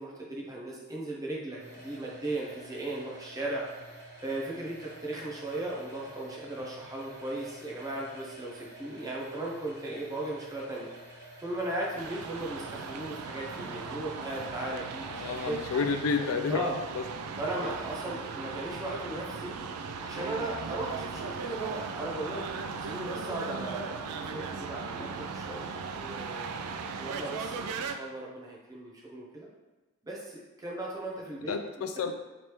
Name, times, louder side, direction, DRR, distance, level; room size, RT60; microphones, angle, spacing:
voice 1, 0.0-3.7 4.2-10.9 11.4-15.6 16.5-16.8 17.4-19.5 20.0-22.5 22.8-25.7 25.9-26.5 27.0-29.5 30.0-31.9, right 1 dB, 15° right, -3 dB, 0.5 m, -37 dB
sound 1, 1.6-20.3, right 1 dB, 50° right, 1.1 m, -50 dB
sound 2, 12.0-28.0, right 5 dB, 85° right, 0.3 m, -38 dB
voice 2, 15.1-16.7 16.9-17.0 17.6-17.7 31.5-32.1, left 5 dB, 65° left, 7 dB, 0.3 m, -30 dB
3.3 x 3.0 x 2.9 m, 1.2 s
head